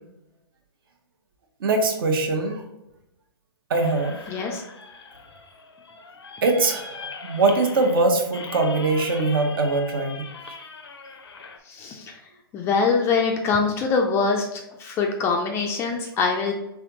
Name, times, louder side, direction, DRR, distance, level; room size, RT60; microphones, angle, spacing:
voice 1, 1.6-2.6 3.7-4.3 6.4-10.5, right 3 dB, 60° right, 3 dB, 0.9 m, -22 dB
sound 1, 3.7-11.6, left 4 dB, 85° left, 0.6 m, -41 dB
voice 2, 4.3-4.6 11.7-12.2 12.5-16.5, left 4 dB, 20° left, 1 dB, 0.4 m, -24 dB
3.5 x 3.3 x 2.9 m, 0.91 s
hypercardioid pair, 130°, 13 cm